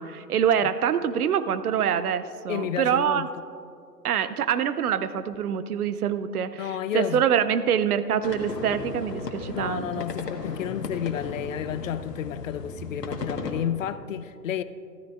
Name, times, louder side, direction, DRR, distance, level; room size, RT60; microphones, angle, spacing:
voice 1, 0.0-3.3 4.0-9.9, right 8 dB, 65° right, 13 dB, 0.7 m, -25 dB
voice 2, 2.5-3.3 6.5-7.2 9.5-14.6, left 9 dB, 55° left, 14 dB, 0.5 m, -31 dB
sound 1, 8.2-13.5, left 3 dB, 75° left, 1.5 m, -36 dB
14.5 x 13.5 x 2.4 m, 2.4 s
figure-of-eight pair, 125°, 49 cm